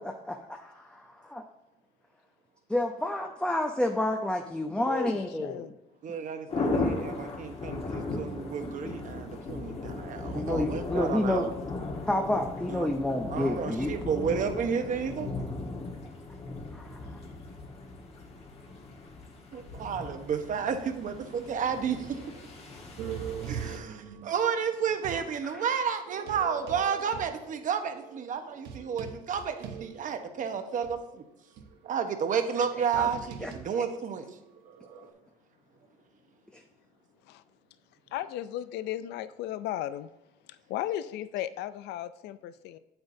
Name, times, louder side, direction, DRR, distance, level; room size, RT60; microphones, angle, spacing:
voice 1, 0.0-1.4 2.7-5.6 10.3-11.5 12.1-13.9 16.7-17.0 25.4-25.7 33.0-33.1 33.4-33.8, left 1 dB, 5° left, 0.6 m, -30 dB
voice 2, 4.7-5.8 37.3-37.4 38.1-40.1 40.7-42.8, left 12 dB, 85° left, 0.4 m, -35 dB
voice 3, 6.0-11.5 12.7-12.9 13.3-15.3 19.5-22.5 23.0-23.2 23.5-29.5 29.8-31.2 31.8-34.2, right 7 dB, 50° right, 1.0 m, -31 dB
sound 1, 6.5-23.8, left 3 dB, 35° left, 1.5 m, -37 dB
sound 2, 23.0-25.3 26.0-30.4 30.8-30.9 31.6-35.1, right 7 dB, 90° right, 1.0 m, -42 dB
8.8 x 7.9 x 2.7 m
cardioid pair, 110°, 17 cm